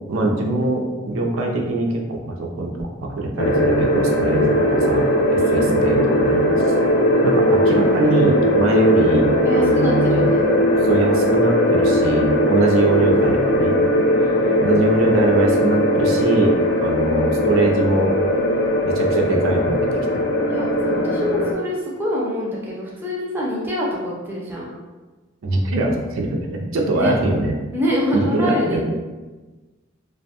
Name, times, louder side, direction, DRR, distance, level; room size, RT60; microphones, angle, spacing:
voice 1, 0.1-6.4 7.2-10.3 10.8-13.7 14.6-18.2 18.8-20.3 25.4-27.5 28.1-28.8, right 2 dB, 80° right, 1 dB, 0.4 m, -22 dB
sound 1, 3.4-21.5, left 1 dB, 55° left, 0.4 m, -19 dB
voice 2, 5.4-5.8 9.4-10.4 14.1-14.6 20.5-24.7 26.9-27.1 27.7-28.8, equal, 10° right, -4 dB, 0.4 m, -25 dB
2.5 x 2.1 x 2.7 m, 1.2 s
head